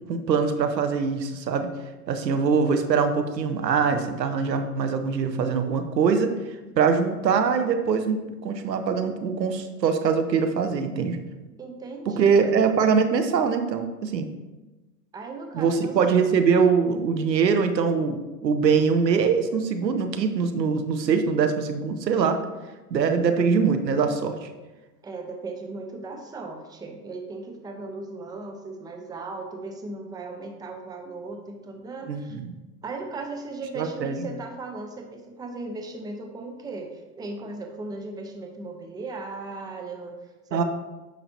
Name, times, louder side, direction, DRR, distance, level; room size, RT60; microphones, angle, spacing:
voice 1, 0.0-1.7 2.1-6.3 6.8-11.2 12.1-14.3 15.5-22.4 22.9-24.5 32.1-32.5 33.8-34.2 40.5-40.6, right 5 dB, 80° right, 7 dB, 0.9 m, -23 dB
voice 2, 11.6-12.5 15.1-15.9 25.0-32.4 32.8-40.6, right 3 dB, 10° right, 3 dB, 0.7 m, -37 dB
9.1 x 5.8 x 2.8 m, 1.2 s
hypercardioid pair, 100°, 49 cm